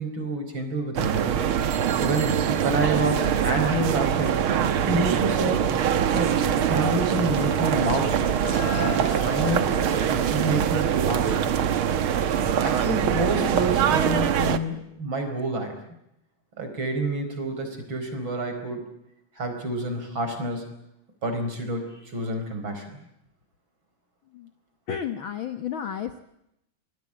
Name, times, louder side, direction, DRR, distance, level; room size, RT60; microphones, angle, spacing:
voice 1, 0.0-1.4 2.0-4.4 4.9-5.7 6.1-6.4 6.7-8.3 9.0-9.8 10.3-11.6 12.6-15.8 16.6-18.9 19.4-20.7 21.2-22.9, right 2 dB, 35° right, 7 dB, 5.1 m, -28 dB
sound 1, 1.0-14.6, right 8 dB, 60° right, 1.4 m, -23 dB
sound 2, 4.9-8.0 8.3-10.1, left 11 dB, 85° left, 3.1 m, -40 dB
Car, 8.2-9.5, right 1 dB, 75° right, 9.1 m, -36 dB
voice 2, 24.9-26.2, left 8 dB, 65° left, 9 dB, 1.2 m, -32 dB
26.5 x 20.5 x 8.7 m, 0.83 s
omnidirectional pair, 3.9 m